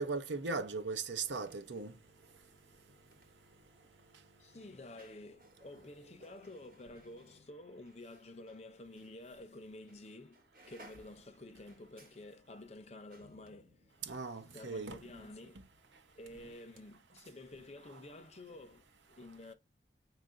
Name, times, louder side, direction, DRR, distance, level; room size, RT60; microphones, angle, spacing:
voice 1, 0.0-2.0 14.1-15.2, right 4 dB, 85° right, 0.7 m, -38 dB
sound 1, 0.9-8.6 9.0-9.1 9.9-10.1 10.3-16.8 17.1-17.2, right 1 dB, 50° right, 1.1 m, -64 dB
voice 2, 4.4-14.2 14.5-15.6 16.1-19.5, left 2 dB, 35° left, 0.5 m, -51 dB
5.1 x 2.5 x 3.7 m
head